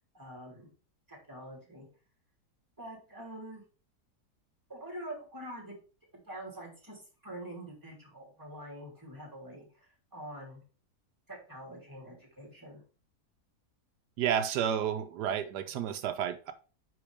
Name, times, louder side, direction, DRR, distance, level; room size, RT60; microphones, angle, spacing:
voice 1, 0.1-0.7 1.1-1.9 2.8-3.6 4.7-5.8 6.1-10.6 11.3-12.8, right 1 dB, 10° right, -2 dB, 3.2 m, -45 dB
voice 2, 14.2-16.5, right 9 dB, 85° right, 8 dB, 1.3 m, -31 dB
10.0 x 3.9 x 3.4 m, 0.37 s
omnidirectional pair, 1.7 m